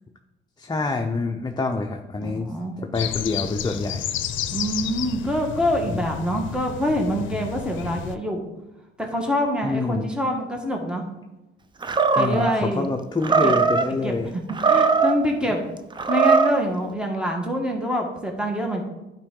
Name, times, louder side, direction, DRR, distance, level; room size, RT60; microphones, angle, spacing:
voice 1, 0.6-4.1 5.9-6.0 9.6-10.1 12.2-14.3, left 3 dB, 20° left, 2 dB, 0.7 m, -27 dB
voice 2, 2.2-2.9 4.5-8.5 9.0-11.0 12.1-12.9 13.4-13.5 14.0-14.1 14.6-15.6 16.1-18.8, equal, 5° right, 1 dB, 1.5 m, -25 dB
sound 1, 2.9-8.2, left 10 dB, 75° left, 0.5 m, -31 dB
Animal, 11.8-12.5 13.2-13.9 14.5-15.2 15.9-16.6, right 5 dB, 25° right, 0.6 m, -19 dB
10.5 x 4.6 x 3.8 m, 0.99 s
cardioid pair, 90°, 20 cm